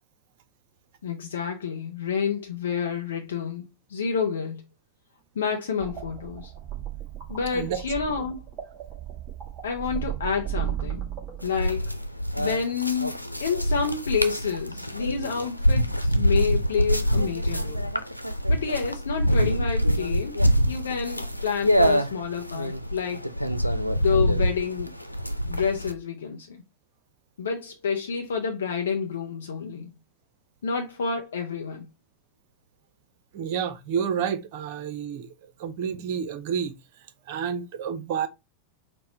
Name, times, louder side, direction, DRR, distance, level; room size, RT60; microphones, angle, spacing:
voice 1, 1.0-4.6 5.4-6.5 7.3-8.4 9.6-11.1 11.4-12.0 12.4-17.9 18.5-20.4 20.7-23.3 24.0-24.9 25.5-26.6 27.4-29.9 30.6-31.9, left 6 dB, 65° left, 0.5 m, -29 dB
sound 1, 5.8-11.9, right 11 dB, 25° right, 2.1 m, -35 dB
sound 2, 11.4-25.9, equal, 90° right, 0.4 m, -25 dB
voice 2, 33.3-35.3 35.6-36.8 37.3-38.3, right 7 dB, 50° right, 0.6 m, -29 dB
4.4 x 2.1 x 4.3 m
figure-of-eight pair, 90°, 0 cm